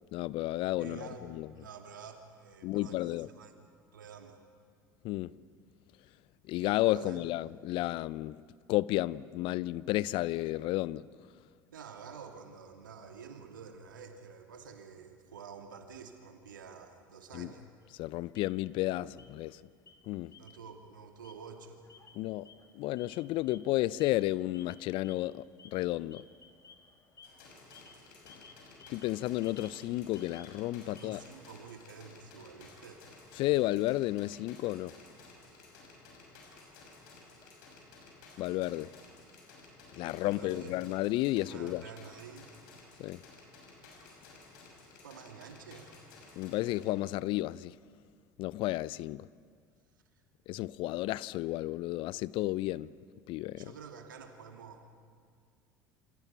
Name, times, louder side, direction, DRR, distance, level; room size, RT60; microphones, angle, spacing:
voice 1, 0.1-1.5 2.6-3.3 5.0-5.3 6.5-8.4 8.7-11.1 17.3-17.5 18.0-19.6 20.1-20.3 22.1-22.5 22.7-26.2 28.9-31.2 33.4-35.0 38.4-38.9 39.9-41.8 43.0-43.2 46.4-47.8 48.4-49.3 50.5-52.9 53.3-53.7, left 17 dB, 55° left, 0.6 m, -32 dB
voice 2, 0.8-1.2 1.6-3.5 3.9-4.4 6.9-7.2 11.7-17.7 20.4-21.8 30.8-33.0 40.2-40.7 41.5-42.5 45.0-45.9 53.5-54.9, right 6 dB, 80° right, 2.5 m, -49 dB
sound 1, 17.8-18.9 19.2-19.6 19.9-20.8 21.1-37.5, left 5 dB, 30° left, 2.4 m, -60 dB
sound 2, 27.2-46.9, left 3 dB, 70° left, 6.9 m, -55 dB
28.0 x 27.0 x 5.7 m
figure-of-eight pair, 65°, 11 cm